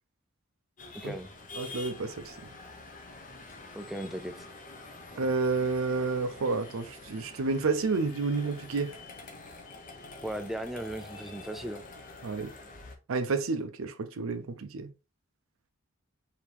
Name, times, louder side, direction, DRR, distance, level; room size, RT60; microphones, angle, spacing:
sound 1, 0.8-13.0, left 3 dB, 40° left, 0.8 m, -47 dB
voice 1, 1.6-2.3 5.2-8.9 12.2-12.5 13.1-14.9, right 4 dB, 70° right, 0.5 m, -30 dB
voice 2, 3.7-4.5 10.2-11.8, right 1 dB, ahead, 0.3 m, -37 dB
4.6 x 2.8 x 3.3 m
head